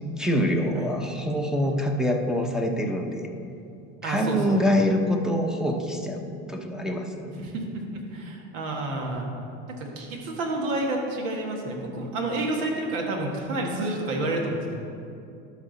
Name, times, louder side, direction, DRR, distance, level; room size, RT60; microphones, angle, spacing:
voice 1, 0.2-3.3 4.0-7.4 12.0-12.1, equal, ahead, 1 dB, 0.7 m, -25 dB
voice 2, 4.0-4.7 7.4-7.6 7.9-9.3 9.7-14.8, right 2 dB, 80° right, 0 dB, 1.8 m, -29 dB
12.0 x 5.6 x 4.0 m, 2.6 s
hypercardioid pair, 90°, 40 cm